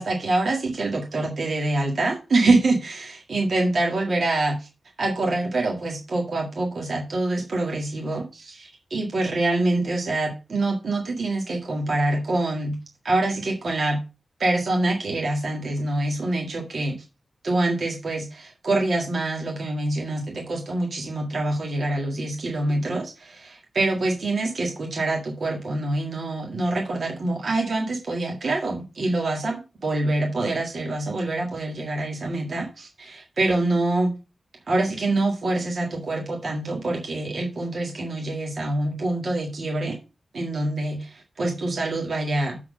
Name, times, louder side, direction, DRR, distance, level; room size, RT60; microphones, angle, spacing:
voice 1, 0.0-4.7 5.0-12.8 13.0-14.0 14.4-17.0 17.4-34.2 34.7-40.0 40.3-42.6, right 2 dB, 55° right, 0 dB, 1.7 m, -25 dB
7.3 x 4.2 x 6.2 m, 0.29 s
wide cardioid pair, 165°, 0 cm